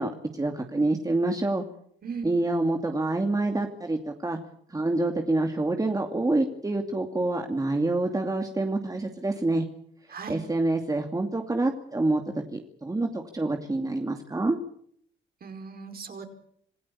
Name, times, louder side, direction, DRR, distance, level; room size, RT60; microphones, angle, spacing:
voice 1, 0.0-1.6 2.2-4.4 4.7-9.7 10.3-12.2 12.5-14.6, right 2 dB, 15° right, 4 dB, 2.5 m, -27 dB
voice 2, 10.1-10.4 15.4-16.3, right 5 dB, 50° right, 5 dB, 5.2 m, -37 dB
27.5 x 16.5 x 8.7 m, 0.66 s
cardioid pair, 90°, 20 cm